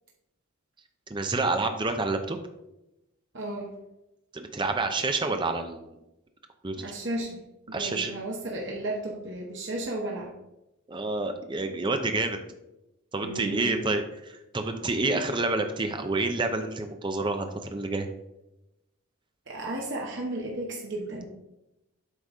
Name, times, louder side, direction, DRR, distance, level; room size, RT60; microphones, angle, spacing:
voice 1, 1.1-2.4 4.3-5.9 6.6-6.8 7.7-8.1 10.9-12.4 13.1-14.0 14.3-18.1, right 3 dB, 20° right, 6 dB, 0.6 m, -28 dB
voice 2, 3.3-3.7 6.8-7.4 7.7-10.3 13.2-13.8 19.5-21.2, right 1 dB, 55° right, -1 dB, 1.1 m, -34 dB
8.2 x 4.0 x 4.9 m, 0.92 s
head